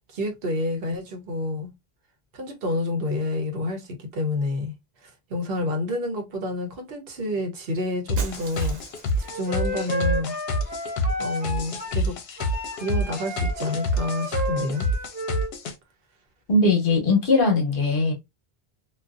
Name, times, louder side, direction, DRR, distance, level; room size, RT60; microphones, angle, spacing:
voice 1, 0.1-1.7 2.3-4.7 5.0-8.8 9.2-10.3 10.6-10.9 11.2-12.2 12.8-14.9, left 2 dB, 65° right, 1.0 m, -29 dB
sound 1, 8.1-15.7, equal, 80° left, 0.8 m, -27 dB
Shatter, 8.2-9.5, right 4 dB, 50° right, 0.6 m, -40 dB
Wind instrument woodwind instrument, 9.2-12.0 12.4-15.5, equal, 10° right, 0.6 m, -32 dB
voice 2, 16.5-18.1, left 2 dB, 60° left, 1.0 m, -20 dB
2.5 x 2.3 x 2.4 m
omnidirectional pair, 1.0 m